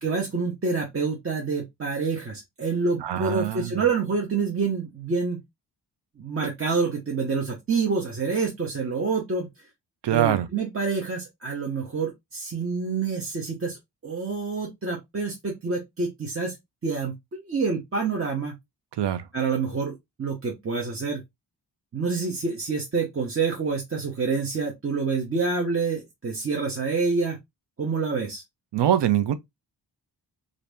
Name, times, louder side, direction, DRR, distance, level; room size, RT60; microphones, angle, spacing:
voice 1, 0.0-5.4 6.2-9.5 10.1-16.6 16.8-18.5 19.3-21.2 21.9-27.4 27.8-28.4, right 4 dB, 35° right, 0.8 m, -27 dB
voice 2, 3.0-3.8 10.0-10.5 19.0-19.3 28.7-29.3, right 11 dB, 80° right, 0.6 m, -23 dB
2.8 x 2.6 x 3.3 m
wide cardioid pair, 150°, 41 cm